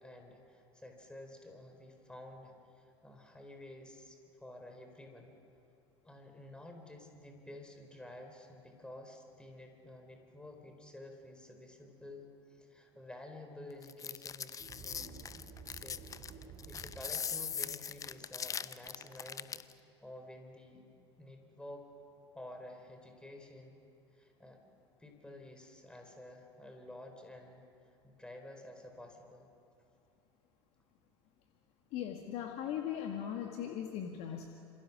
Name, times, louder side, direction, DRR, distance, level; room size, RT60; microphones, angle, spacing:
voice 1, 0.0-5.3 6.0-15.2 15.7-19.6 20.0-20.9 21.2-21.8 22.3-23.8 24.1-24.6 25.0-29.5, left 1 dB, 5° left, 4 dB, 4.4 m, -51 dB
sound 1, 13.8-19.7, left 7 dB, 25° left, 0.7 m, -41 dB
sound 2, 14.6-18.0, right 5 dB, 40° right, 6.8 m, -52 dB
voice 2, 31.9-34.5, left 9 dB, 50° left, 3 dB, 1.9 m, -39 dB
27.0 x 27.0 x 6.2 m, 2.6 s
figure-of-eight pair, 70°, 14 cm